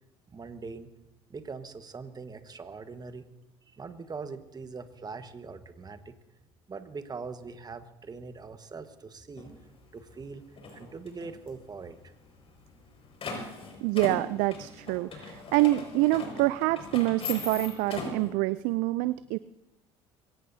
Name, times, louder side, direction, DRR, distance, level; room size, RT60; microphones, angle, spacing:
voice 1, 0.3-0.9 1.3-3.3 3.7-6.1 6.7-9.5 9.9-10.4 10.7-12.1, right 4 dB, 25° right, 9 dB, 1.4 m, -42 dB
sound 1, 9.4-9.5 10.0-10.3 10.6-11.5 11.8-11.9 12.1-12.2 12.6-18.3, left 4 dB, 40° left, 5.8 m, -39 dB
voice 2, 13.8-19.4, right 18 dB, 70° right, 16 dB, 0.4 m, -26 dB
23.5 x 17.5 x 2.8 m, 0.92 s
hypercardioid pair, 70°, 14 cm